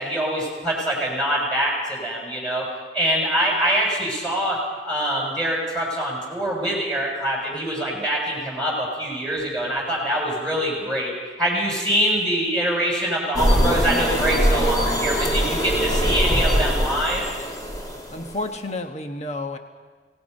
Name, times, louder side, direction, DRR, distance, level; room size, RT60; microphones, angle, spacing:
voice 1, 0.0-2.7 2.9-11.1 11.4-17.3, equal, 5° left, -3 dB, 6.8 m, -24 dB
sound 1, 13.3-18.4, equal, 20° left, 2.5 m, -22 dB
voice 2, 18.1-19.6, left 2 dB, 40° left, 5 dB, 1.3 m, -30 dB
29.5 x 18.5 x 5.5 m, 1.5 s
head